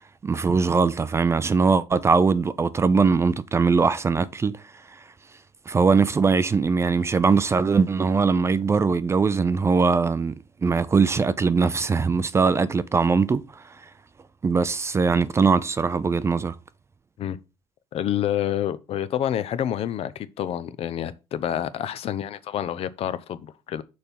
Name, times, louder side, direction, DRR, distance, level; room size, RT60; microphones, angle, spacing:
voice 1, 0.2-5.0 5.7-10.4 10.6-13.8 14.4-16.6, right 5 dB, 20° right, 0.5 m, -21 dB
voice 2, 17.9-23.8, left 10 dB, 50° left, 0.7 m, -28 dB
6.5 x 4.4 x 5.3 m
cardioid pair, 110°, 13 cm